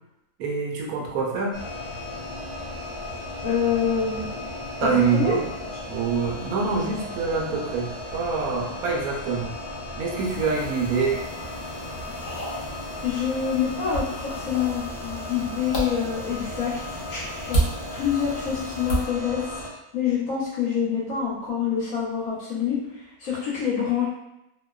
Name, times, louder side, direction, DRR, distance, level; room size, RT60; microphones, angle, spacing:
voice 1, 0.4-1.6 4.8-5.4 5.9-9.5 10.0-11.2, right 5 dB, 75° right, -2 dB, 1.0 m, -25 dB
sound 1, 1.5-19.7, left 2 dB, 20° right, 0.5 m, -36 dB
voice 2, 3.4-4.3 4.8-5.4 13.0-17.0 17.5-17.6 17.9-19.4 19.9-24.1, left 7 dB, 65° left, -5 dB, 0.9 m, -26 dB
sound 2, 10.2-19.1, right 2 dB, 85° left, 0.4 m, -33 dB
2.8 x 2.1 x 2.2 m, 0.86 s
omnidirectional pair, 1.7 m